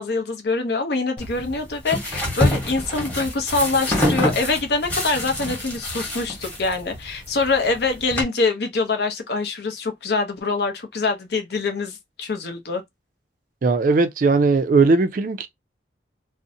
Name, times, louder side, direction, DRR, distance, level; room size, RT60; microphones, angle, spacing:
voice 1, 0.0-12.8, left 3 dB, 60° left, 0.6 m, -24 dB
sound 1, 1.2-8.2, left 1 dB, 10° left, 1.0 m, -26 dB
voice 2, 13.6-15.5, right 4 dB, 45° right, 0.3 m, -18 dB
2.5 x 2.1 x 2.6 m
head